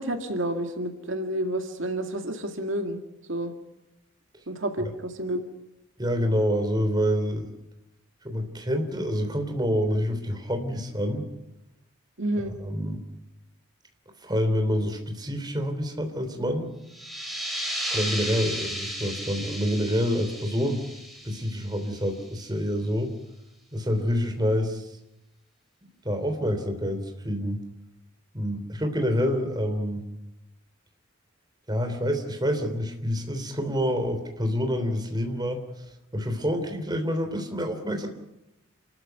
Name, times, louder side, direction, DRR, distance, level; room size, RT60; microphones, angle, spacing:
voice 1, 0.0-3.0 3.3-3.5 4.5-5.4 12.2-12.5, right 1 dB, 65° right, 4 dB, 2.2 m, -29 dB
voice 2, 6.0-7.5 8.2-11.3 12.4-13.0 14.2-16.7 17.9-20.8 21.2-23.1 23.7-25.0 26.1-27.6 28.3-30.0 31.7-35.6 36.1-38.1, equal, 20° right, 5 dB, 3.4 m, -27 dB
sound 1, 16.9-22.3, equal, ahead, 4.4 m, -34 dB
28.5 x 14.0 x 9.3 m, 0.89 s
head